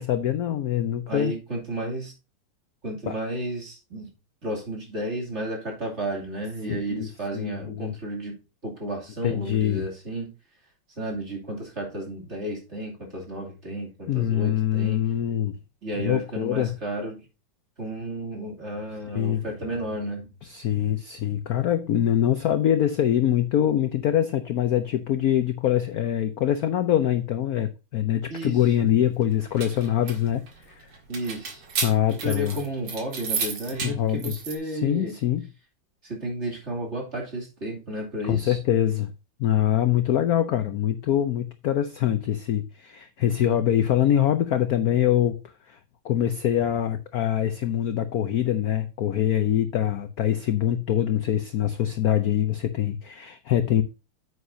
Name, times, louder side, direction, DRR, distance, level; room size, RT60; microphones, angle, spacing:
voice 1, 0.0-1.3 3.1-3.2 6.7-7.1 7.3-7.9 9.2-9.8 14.1-15.5 16.0-16.7 19.1-19.4 20.4-30.9 31.8-32.6 33.8-34.3 34.7-35.5 38.3-39.1 39.4-45.4 45.7-45.8 46.0-53.8, left 11 dB, 70° left, 0.9 m, -24 dB
voice 2, 1.1-2.1 2.8-4.1 4.4-8.4 8.6-10.3 11.0-15.1 15.8-17.2 17.8-20.3 28.3-28.6 31.1-31.6 32.1-35.1 36.0-38.6, right 1 dB, 30° right, 2.9 m, -32 dB
sound 1, 29.3-34.5, right 5 dB, 85° right, 2.7 m, -33 dB
9.4 x 8.3 x 2.7 m
omnidirectional pair, 2.4 m